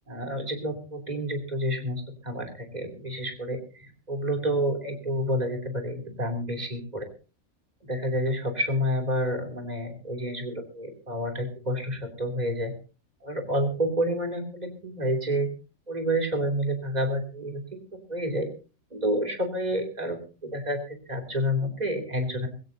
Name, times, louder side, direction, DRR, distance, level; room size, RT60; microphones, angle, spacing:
voice 1, 0.1-7.0 7.8-12.7 13.2-15.5 15.9-18.5 18.9-22.5, equal, 30° right, 3 dB, 3.0 m, -29 dB
20.5 x 16.5 x 2.7 m, 0.34 s
omnidirectional pair, 1.5 m